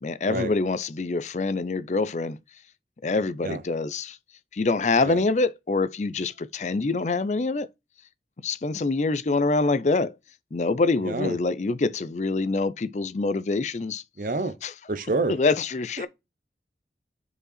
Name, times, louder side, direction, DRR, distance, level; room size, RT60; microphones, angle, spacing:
voice 1, 0.0-2.4 3.0-4.2 4.5-7.7 8.4-10.1 10.5-14.0 14.6-14.7 15.3-16.1, left 3 dB, 40° left, 0.5 m, -25 dB
voice 2, 11.0-11.4 14.2-14.6 14.9-15.3 16.0-16.1, right 3 dB, 50° right, 0.7 m, -28 dB
5.3 x 4.9 x 4.2 m
head